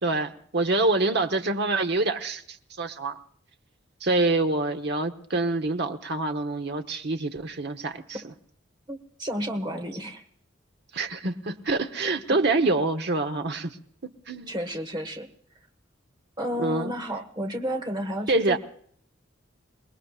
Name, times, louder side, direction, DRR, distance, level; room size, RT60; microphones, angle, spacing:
voice 1, 0.0-3.2 4.0-8.0 10.9-13.8 14.3-14.6 16.6-16.9 18.3-18.6, right 2 dB, 55° right, 6 dB, 1.0 m, -26 dB
voice 2, 8.9-10.2 12.0-12.4 14.5-15.3 16.4-18.6, equal, 20° right, 5 dB, 1.5 m, -32 dB
28.5 x 19.0 x 2.4 m, 0.63 s
head